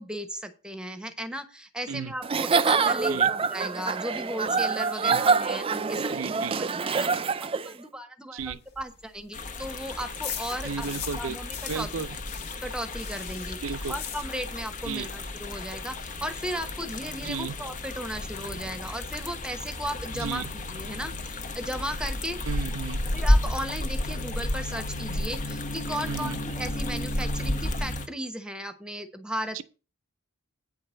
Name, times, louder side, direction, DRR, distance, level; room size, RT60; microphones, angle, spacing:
voice 1, 0.0-7.1 7.4-10.9 11.2-11.9 12.6-13.6 13.9-22.4 23.1-29.6, equal, 5° right, 1.0 m, -36 dB
Giggle / Chuckle chortle, 2.2-7.7, right 5 dB, 25° right, 0.4 m, -25 dB
voice 2, 6.0-6.6 8.3-8.6 10.6-11.4 11.7-12.1 13.6-14.0 14.9-15.1 17.2-17.5 20.1-20.5 22.5-23.0 26.1-26.4 29.5-29.6, right 6 dB, 85° right, 0.7 m, -34 dB
sound 1, 8.4-11.3 11.5-14.7 15.0-15.1 15.4-15.5 15.7-16.2, left 8 dB, 55° left, 1.4 m, -40 dB
sound 2, 9.3-28.1, left 1 dB, 40° left, 0.9 m, -32 dB
9.2 x 4.7 x 7.6 m
head